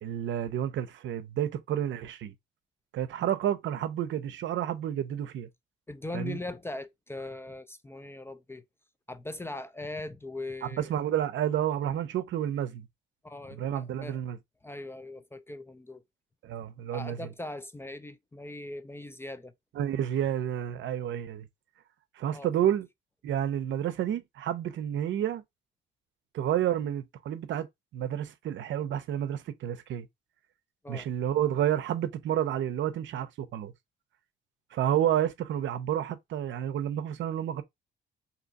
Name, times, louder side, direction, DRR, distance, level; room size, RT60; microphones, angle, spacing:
voice 1, 0.0-2.3 2.9-5.5 6.1-6.4 10.6-12.9 13.5-14.4 16.4-17.2 19.7-21.5 22.2-22.9 23.2-25.4 26.3-27.7 27.9-30.1 30.9-33.7 34.7-37.6, right 10 dB, 70° right, 0.6 m, -30 dB
voice 2, 5.9-8.6 9.1-10.9 13.2-14.2 14.6-16.0 16.9-19.5 22.3-22.7 30.8-31.1, left 2 dB, 10° left, 0.3 m, -40 dB
2.8 x 2.5 x 3.9 m
cardioid pair, 90°, 20 cm